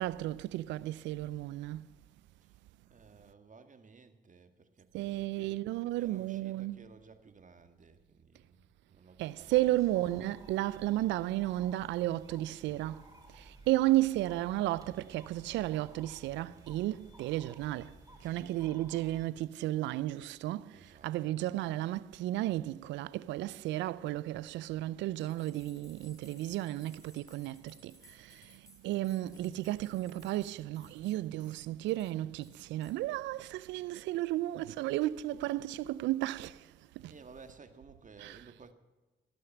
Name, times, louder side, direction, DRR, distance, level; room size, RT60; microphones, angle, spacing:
voice 1, 0.0-1.9 4.9-6.8 9.2-37.1 38.2-38.4, right 15 dB, 85° right, 0.4 m, -33 dB
voice 2, 2.9-5.6 5.9-9.7 18.2-18.5 20.7-21.4 37.1-38.7, right 4 dB, 45° right, 1.7 m, -56 dB
sound 1, 9.4-19.3, right 1 dB, 20° right, 3.2 m, -56 dB
sound 2, 25.2-31.6 31.9-32.1 32.4-32.9, left 1 dB, 20° left, 3.0 m, -61 dB
17.5 x 6.5 x 9.1 m
hypercardioid pair, 45°, 18 cm